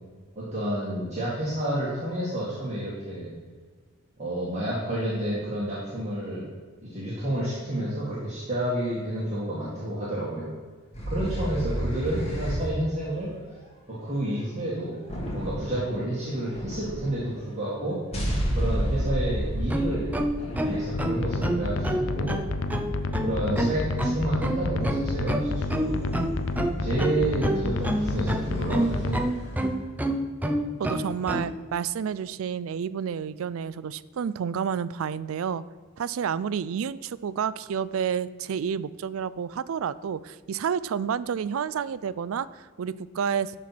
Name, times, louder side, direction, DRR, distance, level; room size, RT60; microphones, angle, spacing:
voice 1, 0.4-3.3 4.2-6.5 6.8-10.5 11.1-13.3 13.9-15.0 15.3-18.0 18.5-20.1 20.5-22.3 23.2-26.1 26.8-29.2 29.5-29.6, right 1 dB, 35° right, -8 dB, 2.0 m, -30 dB
sound 1, 10.9-12.7 15.1-15.9 16.5-17.3 18.1-23.2 24.7-29.6, equal, 30° left, 2.1 m, -33 dB
sound 2, 19.6-31.5, right 1 dB, 10° right, 0.5 m, -28 dB
sound 3, 20.9-29.2, left 2 dB, 65° left, 0.6 m, -30 dB
voice 2, 30.8-35.6 36.0-43.6, right 7 dB, 80° right, 17 dB, 0.4 m, -30 dB
12.0 x 4.4 x 6.0 m, 1.5 s
head